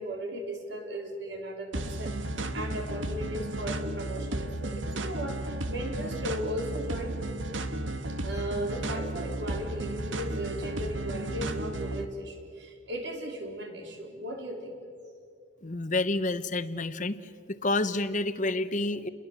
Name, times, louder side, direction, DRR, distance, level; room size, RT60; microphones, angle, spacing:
voice 1, 0.0-7.3 8.2-14.8, equal, 65° right, 3 dB, 4.3 m, -36 dB
sound 1, 1.7-12.0, right 1 dB, 85° right, 1.7 m, -34 dB
voice 2, 15.6-17.1 17.6-19.1, left 2 dB, 40° left, 12 dB, 1.1 m, -28 dB
30.0 x 22.0 x 7.5 m, 2.2 s
head